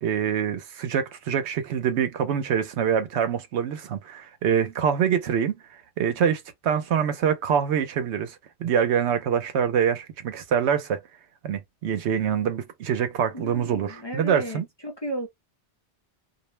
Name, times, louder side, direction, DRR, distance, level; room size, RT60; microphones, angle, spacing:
voice 1, 0.0-5.6 6.0-11.0 11.4-14.7, right 8 dB, 80° right, 0.9 m, -25 dB
voice 2, 13.3-15.3, right 1 dB, 30° left, 0.5 m, -34 dB
2.4 x 2.1 x 3.0 m
omnidirectional pair, 1.1 m